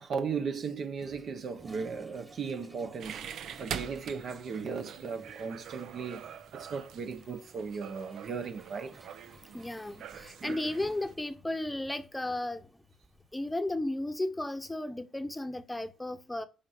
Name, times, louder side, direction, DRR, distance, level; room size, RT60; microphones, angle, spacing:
voice 1, 0.0-9.2 10.4-10.6, right 5 dB, 60° right, 1.1 m, -37 dB
Toilet flush, 1.0-13.7, right 2 dB, 20° right, 1.7 m, -57 dB
sound 1, 3.0-11.1, right 8 dB, 75° right, 0.6 m, -44 dB
voice 2, 9.5-12.7 13.3-16.4, left 1 dB, 10° left, 0.9 m, -34 dB
15.5 x 5.2 x 2.7 m
cardioid pair, 90°, 0 cm